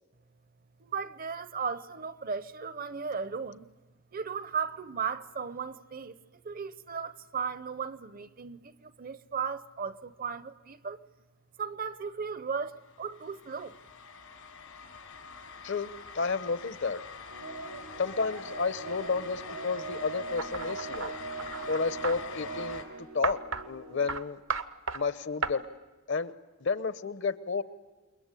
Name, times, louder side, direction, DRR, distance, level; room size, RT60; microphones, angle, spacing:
voice 1, 0.8-3.7 4.1-6.2 6.4-11.0 11.6-13.8, right 6 dB, 40° right, 0.8 m, -36 dB
sound 1, 12.8-22.8, left 5 dB, 90° left, 4.5 m, -45 dB
voice 2, 15.6-17.0 18.0-21.1 21.7-24.4 24.9-25.6 26.1-26.3 26.6-27.6, left 4 dB, 55° left, 1.0 m, -31 dB
sound 2, 17.3-24.2, right 4 dB, 90° right, 2.0 m, -41 dB
sound 3, 20.4-22.2 23.2-23.6 24.1-24.2 24.5-25.0 25.4-25.5, right 4 dB, 60° right, 1.0 m, -33 dB
28.5 x 22.5 x 8.4 m
head